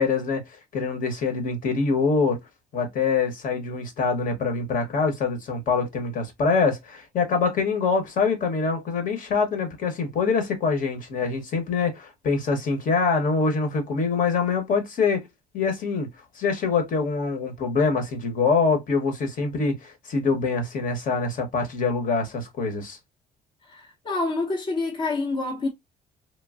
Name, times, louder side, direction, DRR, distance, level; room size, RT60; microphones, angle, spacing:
voice 1, 0.0-2.4 2.7-15.3 15.5-16.1 16.3-23.0, left 4 dB, 55° left, 1.0 m, -24 dB
voice 2, 23.6-25.7, left 3 dB, 30° left, 0.6 m, -27 dB
3.1 x 2.1 x 2.3 m
cardioid pair, 110°, 17 cm